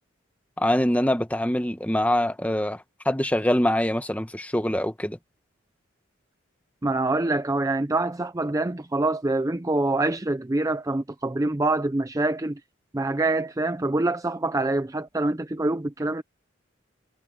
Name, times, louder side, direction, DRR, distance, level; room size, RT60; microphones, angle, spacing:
voice 1, 0.6-5.2, left 1 dB, 5° left, 1.1 m, -24 dB
voice 2, 6.8-12.6 12.9-16.2, right 2 dB, 15° right, 0.5 m, -25 dB
head